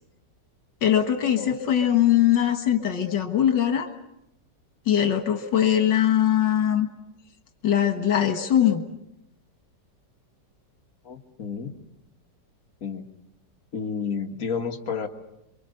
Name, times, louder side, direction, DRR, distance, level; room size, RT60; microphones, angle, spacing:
voice 1, 0.8-3.9 4.9-6.9 7.6-8.8, left 10 dB, 80° left, 6 dB, 2.2 m, -21 dB
voice 2, 11.1-11.7 12.8-13.0 13.7-15.1, left 6 dB, 50° left, 2 dB, 2.0 m, -31 dB
27.5 x 24.5 x 6.5 m, 0.84 s
omnidirectional pair, 1.9 m